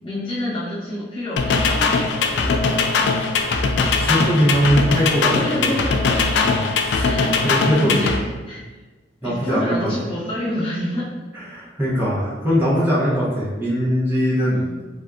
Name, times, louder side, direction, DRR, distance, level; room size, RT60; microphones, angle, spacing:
voice 1, 0.0-3.1 5.3-8.8 9.2-11.1 14.4-14.8, left 1 dB, 30° left, -9 dB, 1.1 m, -29 dB
sound 1, 1.4-8.2, left 4 dB, 70° left, 0.3 m, -20 dB
voice 2, 4.0-5.7 6.4-6.6 6.9-7.9 9.2-9.9 11.5-14.6, equal, 15° right, -10 dB, 0.8 m, -21 dB
3.4 x 2.6 x 2.3 m, 1.3 s
head